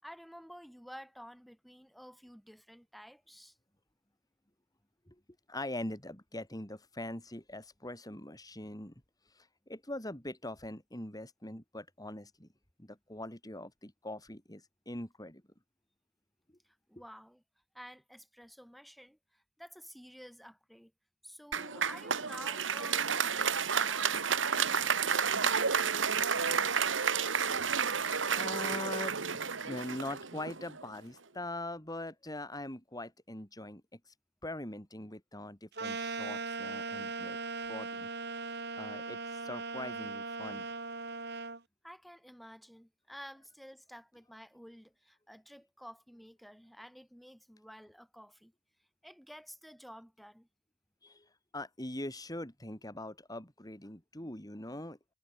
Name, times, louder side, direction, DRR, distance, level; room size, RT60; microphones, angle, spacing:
voice 1, 0.0-3.6 16.6-17.4 17.7-20.9 21.2-25.1 41.8-48.5 49.0-50.5, equal, ahead, 7.8 m, -51 dB
voice 2, 5.5-8.9 9.3-12.5 12.8-15.4 28.3-33.8 34.1-34.2 34.4-37.4 37.7-38.1 38.4-38.5 38.7-40.7 51.0-55.1, left 1 dB, 20° left, 6.3 m, -42 dB
Applause, 21.5-30.9, right 6 dB, 85° right, 2.1 m, -31 dB
sound 1, 35.8-41.6, right 4 dB, 60° right, 7.3 m, -39 dB
head